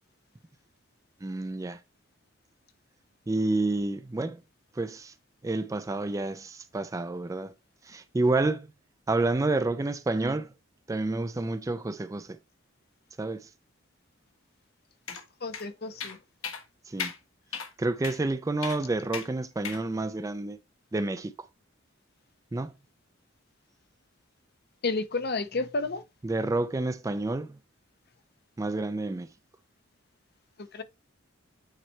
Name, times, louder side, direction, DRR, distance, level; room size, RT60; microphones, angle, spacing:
voice 1, 1.2-1.8 3.3-4.4 4.7-5.1 5.4-7.5 7.8-8.7 9.1-10.5 10.9-12.4 13.2-13.5 16.9-17.1 17.8-20.6 20.9-21.3 22.5-22.7 26.2-27.6 28.6-29.3, right 2 dB, 15° right, 0.3 m, -29 dB
sound 1, 15.1-15.2 15.5-15.6 16.0-16.2 16.4-16.6 17.0-17.2 17.5-17.7 18.0-18.2 18.6-18.8 19.1-19.3 19.6-19.8, left 6 dB, 80° left, 1.5 m, -35 dB
voice 2, 15.4-16.2 24.8-26.0 30.7-30.8, left 3 dB, 50° left, 0.8 m, -31 dB
8.9 x 3.2 x 4.3 m
head